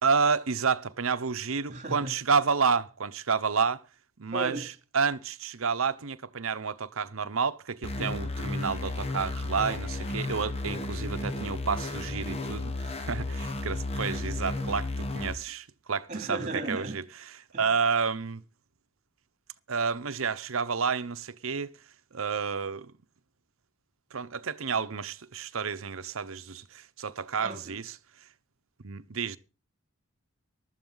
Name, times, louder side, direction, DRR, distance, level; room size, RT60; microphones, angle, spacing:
voice 1, 0.0-3.8 4.2-4.5 4.9-16.4 16.7-17.0 17.6-18.4 19.7-21.7 22.1-22.9 24.1-27.8 28.8-29.4, right 5 dB, 75° right, 0.8 m, -30 dB
voice 2, 1.7-2.1 4.3-4.7 11.0-11.4 16.1-17.0 17.5-17.7 27.4-27.8, right 2 dB, 35° right, 2.7 m, -36 dB
sound 1, 7.8-15.3, left 2 dB, 30° left, 1.1 m, -33 dB
15.0 x 12.5 x 3.9 m
head